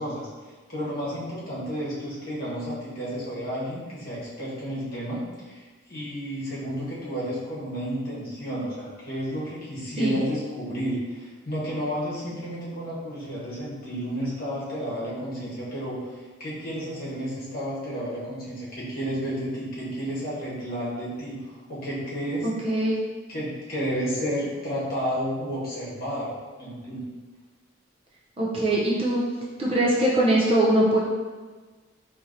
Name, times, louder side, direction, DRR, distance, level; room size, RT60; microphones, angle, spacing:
voice 1, 0.0-22.5 23.3-27.1, equal, 45° left, -8 dB, 1.1 m, -32 dB
voice 2, 22.4-23.0 28.4-29.2 29.6-31.0, right 1 dB, 25° right, -5 dB, 0.5 m, -22 dB
4.4 x 2.7 x 2.6 m, 1.4 s
head